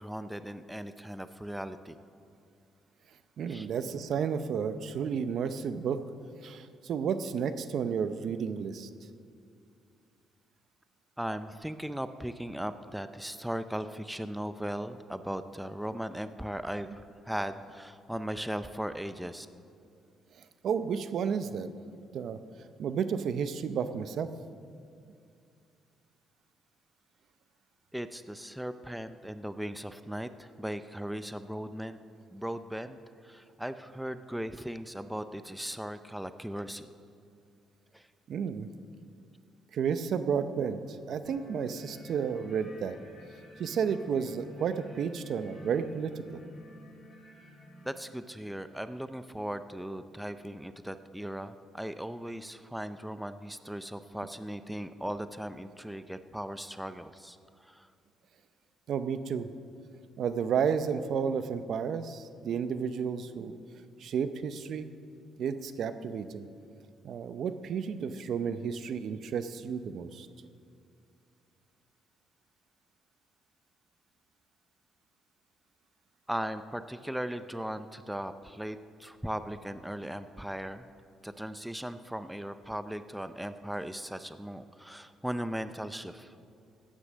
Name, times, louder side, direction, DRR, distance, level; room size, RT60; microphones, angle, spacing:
voice 1, 0.0-2.0 3.5-3.7 11.2-19.5 27.9-32.0 32.3-36.9 37.9-38.1 47.8-57.9 76.3-80.9 81.2-86.3, equal, 5° right, 11 dB, 0.5 m, -38 dB
voice 2, 3.4-6.0 6.4-8.9 20.6-21.7 22.1-22.4 22.8-24.3 38.3-38.7 39.7-42.9 43.6-46.4 58.9-59.5 60.2-63.6 64.0-64.9 65.4-66.5 67.0-70.3, right 7 dB, 60° right, 11 dB, 0.6 m, -32 dB
sound 1, 41.2-47.9, equal, 30° left, 3.4 m, -51 dB
15.0 x 10.0 x 6.3 m, 2.4 s
cardioid pair, 115°, 0 cm